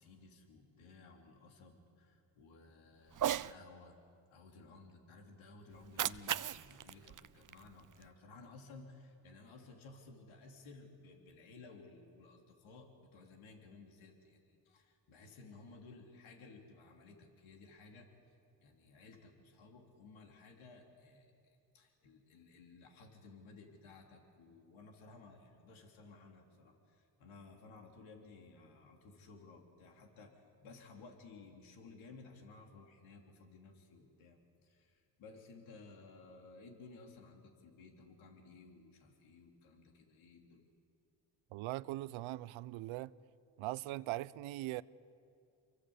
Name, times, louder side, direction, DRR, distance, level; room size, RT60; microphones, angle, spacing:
voice 1, 0.0-4.0 4.3-18.1 18.6-40.6, left 3 dB, 75° left, 3.7 m, -57 dB
Cat, 3.1-3.5 5.7-8.1, right 10 dB, 40° right, 0.7 m, -38 dB
voice 2, 41.5-43.1 43.6-44.8, right 17 dB, 75° right, 0.8 m, -40 dB
28.5 x 24.0 x 8.2 m
supercardioid pair, 55°, 48 cm